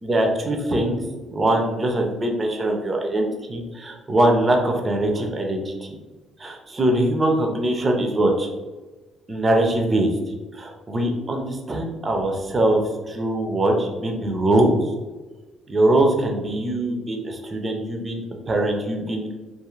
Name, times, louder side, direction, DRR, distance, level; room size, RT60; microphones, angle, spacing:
voice 1, 0.0-1.0 1.3-6.0 6.4-8.5 9.3-10.1 10.5-14.8 15.7-19.3, right 1 dB, 30° right, 2 dB, 0.5 m, -22 dB
2.5 x 2.4 x 3.0 m, 1.2 s
cardioid pair, 95°, 0 cm